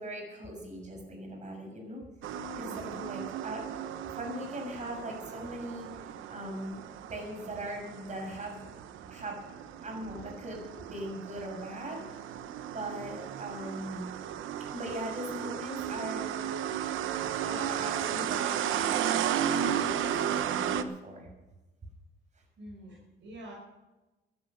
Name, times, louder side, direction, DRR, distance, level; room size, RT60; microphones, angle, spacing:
voice 1, 0.0-3.8 4.1-6.8 7.1-8.6 9.1-12.0 12.7-14.1 14.7-16.9 17.4-21.3, right 1 dB, 35° right, 2 dB, 6.5 m, -40 dB
sound 1, 2.2-20.8, right 9 dB, 80° right, 0.9 m, -34 dB
voice 2, 2.6-3.1 22.6-23.5, right 1 dB, 65° right, 0 dB, 5.1 m, -47 dB
15.0 x 13.0 x 5.4 m, 1.1 s
cardioid pair, 90°, 20 cm